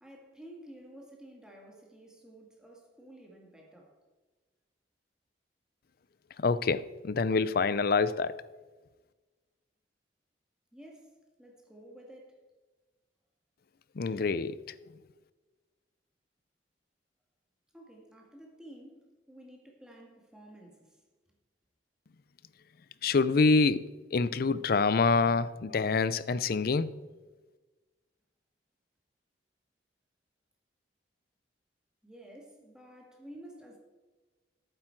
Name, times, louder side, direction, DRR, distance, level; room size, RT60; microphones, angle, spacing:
voice 1, 0.0-3.9 10.7-11.1 11.4-12.4 17.7-21.0 32.0-33.8, right 1 dB, 5° right, 1.7 m, -52 dB
voice 2, 6.4-8.4 14.0-14.7 23.0-27.0, left 4 dB, 55° left, 0.5 m, -26 dB
11.5 x 9.1 x 4.6 m
head